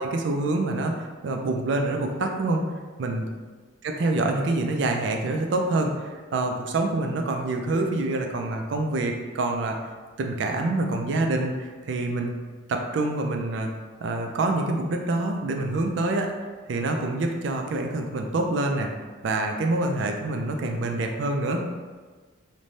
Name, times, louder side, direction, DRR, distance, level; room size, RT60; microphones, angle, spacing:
voice 1, 0.0-2.6 3.0-3.3 3.8-9.8 10.2-12.4 12.7-13.7 14.0-16.3 16.7-18.9 19.2-21.7, right 2 dB, 60° right, 3 dB, 0.3 m, -26 dB
3.2 x 2.1 x 2.6 m, 1.4 s
head